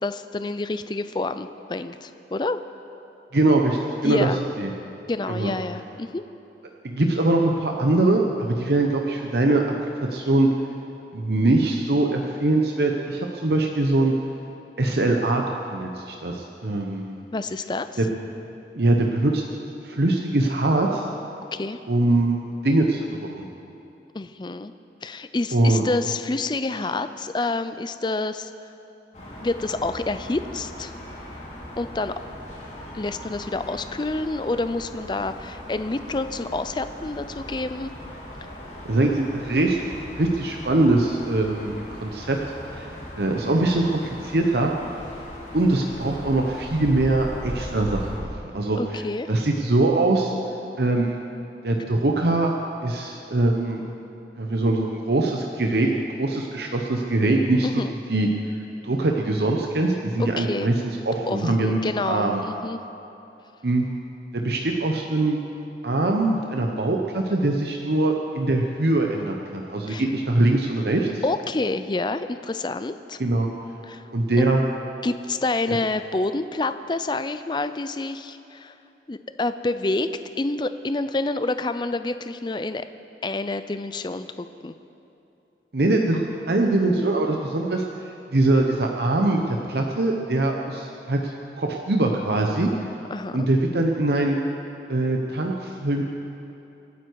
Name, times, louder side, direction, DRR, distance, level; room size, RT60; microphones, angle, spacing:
voice 1, 0.0-2.6 4.0-4.4 5.1-6.2 17.3-18.0 21.5-21.8 24.1-24.7 25.0-28.5 29.4-30.9 31.8-32.1 32.9-37.9 48.8-49.3 57.6-57.9 60.2-60.7 61.3-62.8 69.9-70.0 71.2-73.2 73.9-74.0 75.0-78.7 79.1-80.1 80.4-82.8 83.2-84.7 93.1-93.5, left 2 dB, 25° left, 11 dB, 0.4 m, -28 dB
voice 2, 3.3-4.3 4.6-4.7 5.3-5.5 6.8-9.6 10.1-10.5 11.1-14.1 14.8-15.4 15.7-17.2 18.0-18.1 18.8-19.4 19.8-21.1 21.9-23.5 25.5-25.8 38.8-39.8 40.2-42.4 42.7-42.9 43.2-44.7 45.5-50.3 50.8-51.2 51.6-52.5 52.8-53.8 54.4-57.8 58.1-58.3 58.8-62.4 63.6-63.9 64.3-65.4 65.8-71.2 73.2-73.5 74.1-74.6 75.7-75.8 85.7-92.7 93.3-94.4 94.9-96.0, right 2 dB, 65° right, 1 dB, 0.9 m, -22 dB
sound 1, 29.1-48.2, equal, 40° left, 3.6 m, -39 dB
26.0 x 9.4 x 4.7 m, 2.9 s
head